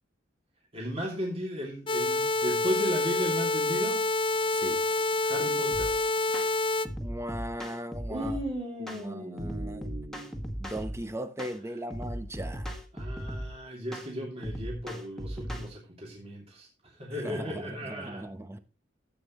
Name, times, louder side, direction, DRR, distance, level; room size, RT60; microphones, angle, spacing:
voice 1, 0.7-4.0 5.2-5.9 8.1-10.5 12.9-16.7 17.0-18.3, equal, 35° right, 2.8 m, -35 dB
sound 1, 1.9-6.9, left 2 dB, 25° left, 0.5 m, -27 dB
voice 2, 4.5-4.8 7.0-8.4 8.8-9.9 10.6-12.8 17.2-18.6, right 1 dB, 15° right, 0.9 m, -38 dB
sound 2, 5.7-5.9 6.3-6.5 6.8-8.4 8.9-9.0 9.4-11.0 11.4-11.6 11.9-13.5 13.9-14.1 14.4-15.7, equal, ahead, 1.9 m, -37 dB
15.0 x 8.5 x 3.1 m
head